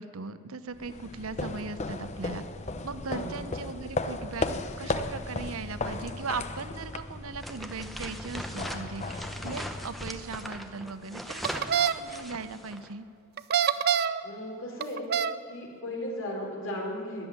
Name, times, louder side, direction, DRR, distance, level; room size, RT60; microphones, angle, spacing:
voice 1, 0.0-2.4 2.8-4.5 4.8-13.1, right 4 dB, 75° right, 12 dB, 0.7 m, -38 dB
sound 1, 0.7-10.4, left 2 dB, 30° left, 0.7 m, -36 dB
voice 2, 3.1-3.4 14.2-15.1 15.5-17.3, left 1 dB, 60° left, -1 dB, 3.8 m, -36 dB
sound 2, 7.4-12.9, equal, ahead, 0.9 m, -40 dB
sound 3, 11.4-11.9 13.4-14.2 14.8-15.4, right 8 dB, 45° right, 0.4 m, -25 dB
13.0 x 11.0 x 9.5 m, 2.5 s
head